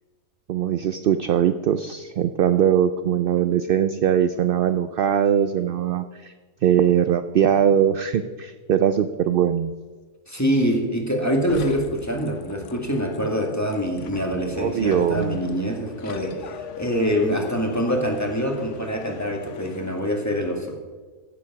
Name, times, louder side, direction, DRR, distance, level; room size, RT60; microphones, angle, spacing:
voice 1, 0.5-6.3 6.6-9.7 14.6-15.4, right 9 dB, 70° right, 10 dB, 0.5 m, -21 dB
voice 2, 10.3-20.8, equal, 10° left, 1 dB, 1.7 m, -25 dB
sound 1, 11.5-20.2, left 7 dB, 65° left, 1.0 m, -40 dB
15.0 x 7.3 x 5.8 m, 1.4 s
omnidirectional pair, 1.4 m